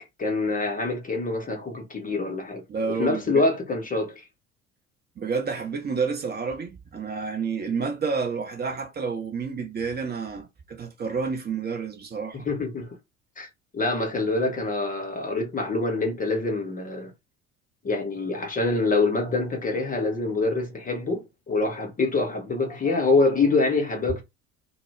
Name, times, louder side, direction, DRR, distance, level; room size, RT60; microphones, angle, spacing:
voice 1, 0.0-2.6 2.9-4.3 12.4-13.0 13.4-13.5 13.7-17.1 17.8-24.2, left 3 dB, 20° left, 0.7 m, -25 dB
voice 2, 2.7-3.4 5.2-12.4, right 5 dB, 25° right, 0.7 m, -29 dB
2.1 x 2.0 x 3.2 m
figure-of-eight pair, 60°, 41 cm